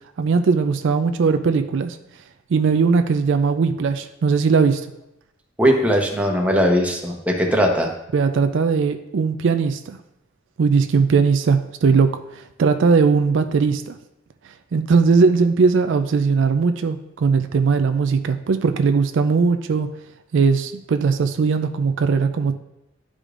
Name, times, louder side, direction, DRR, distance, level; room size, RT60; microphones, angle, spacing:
voice 1, 0.2-2.0 2.5-4.9 8.1-10.0 10.6-14.0 14.7-19.9 20.3-22.5, right 5 dB, 65° right, 8 dB, 0.4 m, -19 dB
voice 2, 5.6-7.9, equal, 5° right, 0 dB, 0.9 m, -19 dB
11.5 x 4.9 x 2.5 m, 0.86 s
head